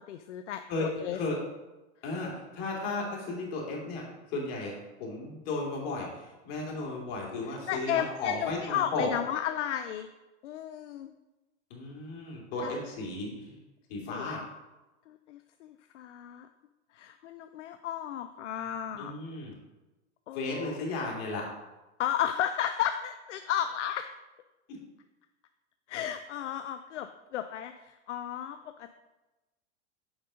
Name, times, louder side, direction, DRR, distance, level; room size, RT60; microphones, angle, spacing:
voice 1, 0.1-1.2 7.7-10.1 10.4-11.1 12.6-12.7 14.1-14.4 15.1-16.5 16.9-19.1 20.3-20.8 22.0-24.1 25.9-28.9, left 10 dB, 80° left, 8 dB, 0.5 m, -34 dB
voice 2, 0.7-1.4 2.0-4.0 4.3-9.1 11.7-13.6 13.9-14.4 19.0-19.5 20.3-21.4, left 3 dB, 60° left, -1 dB, 2.9 m, -34 dB
7.1 x 5.4 x 5.0 m, 1.1 s
hypercardioid pair, 105°, 35 cm